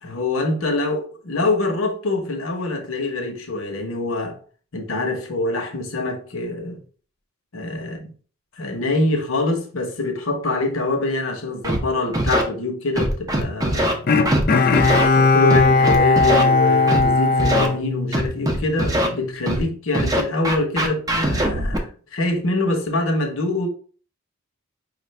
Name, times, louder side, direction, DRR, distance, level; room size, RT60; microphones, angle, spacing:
voice 1, 0.0-4.4 4.7-6.8 7.5-8.0 8.6-14.1 14.9-23.7, left 2 dB, 80° left, 1.0 m, -25 dB
Scratching (performance technique), 11.6-11.8 12.1-12.4 13.0-13.9 14.3-14.4 14.7-15.1 15.5-16.4 16.9-17.0 17.4-17.7 18.1-19.1 19.5-19.6 19.9-21.8, right 1 dB, 15° right, 0.6 m, -21 dB
Bowed string instrument, 14.1-18.6 19.0-19.1, left 3 dB, 45° left, 0.4 m, -17 dB
4.9 x 2.5 x 3.2 m
head